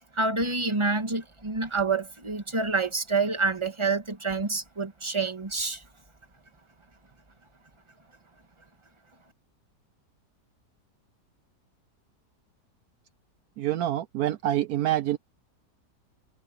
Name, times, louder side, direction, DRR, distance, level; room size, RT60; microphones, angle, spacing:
voice 1, 0.1-5.8, right 3 dB, 15° right, 1.8 m, -27 dB
voice 2, 13.6-15.2, right 13 dB, 70° right, 1.1 m, -26 dB
omnidirectional pair, 1.8 m